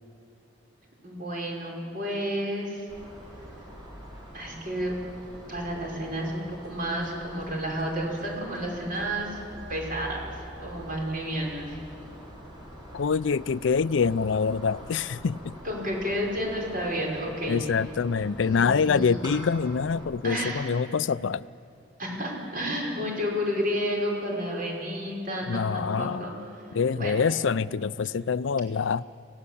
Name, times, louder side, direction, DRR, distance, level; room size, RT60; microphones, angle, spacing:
voice 1, 1.0-2.9 4.3-4.9 5.5-9.4 9.7-11.7 15.6-17.6 18.4-19.3 20.2-20.6 22.0-26.4 27.0-27.2, equal, 50° right, 5.5 m, -31 dB
sound 1, 2.9-20.1, equal, 20° right, 5.7 m, -45 dB
voice 2, 12.9-15.5 17.5-21.5 25.5-26.3 26.7-29.0, left 5 dB, 75° left, 0.4 m, -25 dB
28.0 x 17.5 x 8.5 m
head